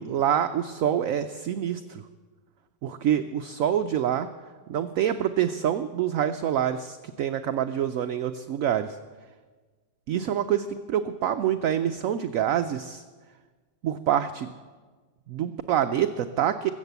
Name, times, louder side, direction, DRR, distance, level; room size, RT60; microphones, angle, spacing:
voice 1, 0.0-2.0 2.8-4.3 4.7-9.0 10.1-13.0 13.8-14.5 15.3-16.7, right 10 dB, 70° right, 9 dB, 0.8 m, -26 dB
22.0 x 7.4 x 8.1 m, 1.4 s
omnidirectional pair, 1.9 m